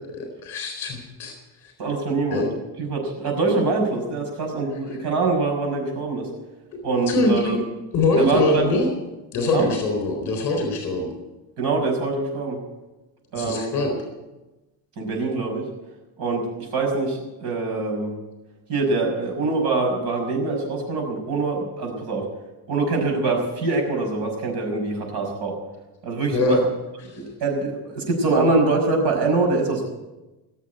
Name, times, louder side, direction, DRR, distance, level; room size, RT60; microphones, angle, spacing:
voice 1, 0.1-1.3 1.6-1.7 2.3-2.5 7.1-7.6 7.9-8.9 9.3-11.1 13.4-14.0 26.3-26.6 27.1-27.2, left 2 dB, 40° left, 2 dB, 3.9 m, -23 dB
voice 2, 1.8-2.5 2.8-6.3 6.8-7.5 8.2-8.7 9.5-9.7 11.6-12.6 13.3-13.7 15.0-15.6 16.2-16.5 16.7-18.1 18.7-22.3 22.7-25.6 26.0-26.6 27.2-29.9, right 3 dB, 65° right, 1 dB, 5.9 m, -24 dB
20.0 x 7.5 x 9.2 m, 1.1 s
cardioid pair, 170°, 43 cm